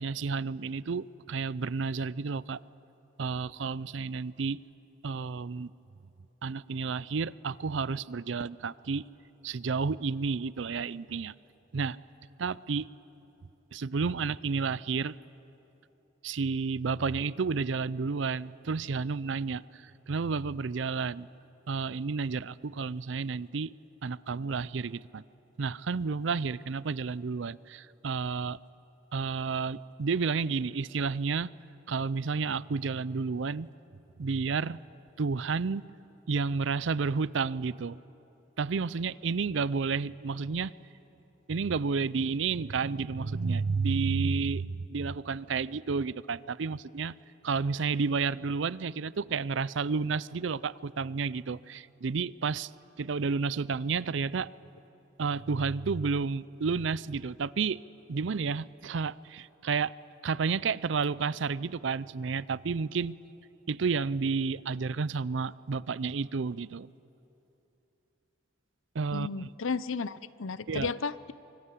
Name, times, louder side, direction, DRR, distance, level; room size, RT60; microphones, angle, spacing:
voice 1, 0.0-2.6 3.2-4.6 5.0-5.7 6.4-9.1 9.4-11.3 11.7-12.0 12.4-12.9 13.7-15.2 16.2-21.3 21.7-23.7 24.0-25.2 25.6-28.6 29.1-31.5 31.9-33.7 34.2-34.8 35.2-35.8 36.3-38.0 38.6-40.7 41.5-47.1 47.4-52.7 53.0-54.5 55.2-57.8 58.1-59.9 60.2-63.1 63.7-66.9 68.9-69.3 70.7-70.9, right 5 dB, 70° right, 20 dB, 0.5 m, -31 dB
voice 2, 69.1-71.3, left 5 dB, 85° left, 17 dB, 0.7 m, -33 dB
25.0 x 24.0 x 8.3 m, 3.0 s
head